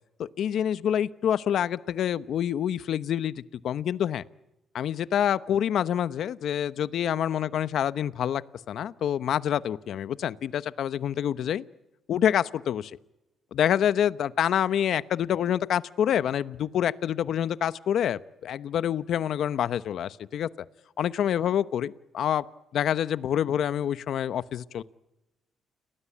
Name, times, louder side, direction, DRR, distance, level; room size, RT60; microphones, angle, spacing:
voice 1, 0.4-3.3 3.6-4.2 4.7-11.6 12.1-12.9 13.5-20.5 21.0-22.4 22.7-24.8, left 9 dB, 70° left, 15 dB, 0.9 m, -27 dB
30.0 x 19.0 x 8.6 m, 0.97 s
cardioid pair, 90°, 0 cm